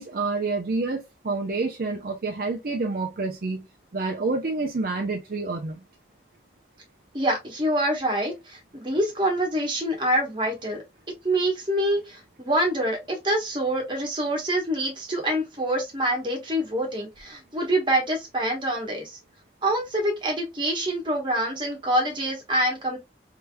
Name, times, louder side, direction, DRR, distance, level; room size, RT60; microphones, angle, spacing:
voice 1, 0.0-3.7 3.9-5.8, right 3 dB, 55° right, 0.6 m, -28 dB
voice 2, 7.1-10.8 11.2-19.2 19.6-23.0, right 1 dB, 25° right, 1.2 m, -26 dB
3.4 x 2.8 x 2.2 m
head